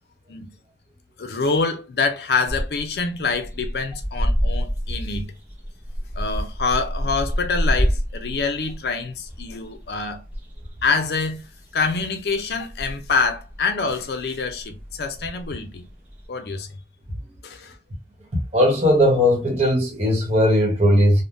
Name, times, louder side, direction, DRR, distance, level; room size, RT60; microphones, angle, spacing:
voice 1, 1.2-5.3 6.2-10.2 10.8-11.4 11.7-15.8 16.3-16.7 17.4-17.7, left 4 dB, 65° left, 0.5 m, -25 dB
sound 1, 2.5-16.3, equal, 10° right, 0.7 m, -29 dB
voice 2, 18.5-21.2, equal, 40° right, 1.0 m, -18 dB
3.5 x 2.1 x 2.5 m
head